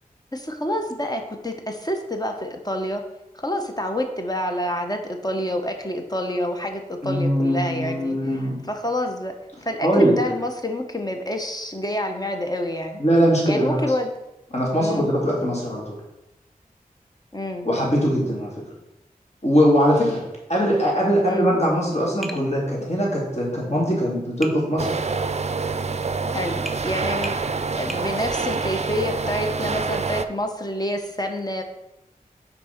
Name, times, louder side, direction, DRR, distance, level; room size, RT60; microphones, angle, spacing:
voice 1, 0.3-3.0 3.3-8.2 8.7-9.3 9.6-13.0 13.5-14.1 14.8-15.1 17.3-17.7 21.3-21.5 26.3-31.6, left 1 dB, 25° left, 4 dB, 1.0 m, -28 dB
voice 2, 7.0-8.6 9.8-10.1 13.0-13.8 14.5-16.0 17.6-18.5 19.4-20.2 20.5-24.9, equal, 45° left, -3 dB, 2.7 m, -21 dB
Tap, 22.2-22.5 24.4-24.6 26.7-26.8 27.2-27.4 27.9-28.1, right 1 dB, ahead, 0.9 m, -34 dB
sound 1, 24.8-30.2, right 4 dB, 45° right, 0.4 m, -26 dB
6.0 x 4.1 x 5.9 m, 0.92 s
cardioid pair, 40°, 15 cm